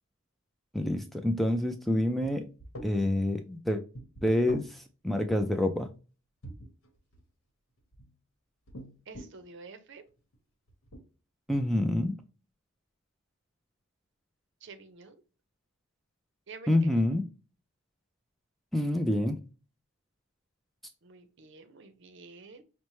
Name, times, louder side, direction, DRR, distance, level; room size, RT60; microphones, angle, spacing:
voice 1, 0.7-2.5 2.8-3.8 4.2-5.9 11.5-12.2 16.7-17.2 18.7-19.4, left 1 dB, ahead, 0.3 m, -27 dB
sound 1, 2.2-2.3 2.6-2.9 3.9-4.7 6.4-7.2 7.8-8.1 8.7-9.4 10.2-10.3 10.7-11.0, right 1 dB, 80° left, 1.0 m, -43 dB
voice 2, 9.1-10.0 14.6-15.2 16.5-17.1 21.0-22.6, right 4 dB, 60° right, 0.6 m, -49 dB
5.4 x 2.1 x 3.0 m
head